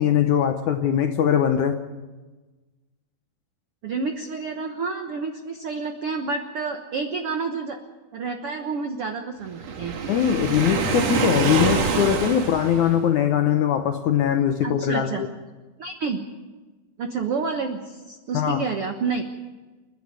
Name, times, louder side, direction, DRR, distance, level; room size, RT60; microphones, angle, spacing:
voice 1, 0.0-1.8 10.1-15.3 18.3-18.6, left 9 dB, 75° left, 6 dB, 1.8 m, -21 dB
voice 2, 3.8-7.8 8.1-10.0 14.6-15.2 15.8-16.2 17.0-19.2, right 4 dB, 75° right, 5 dB, 1.3 m, -29 dB
Waves surf, 9.6-13.1, right 5 dB, 50° right, 2.5 m, -25 dB
29.0 x 10.5 x 9.5 m, 1.2 s
omnidirectional pair, 4.5 m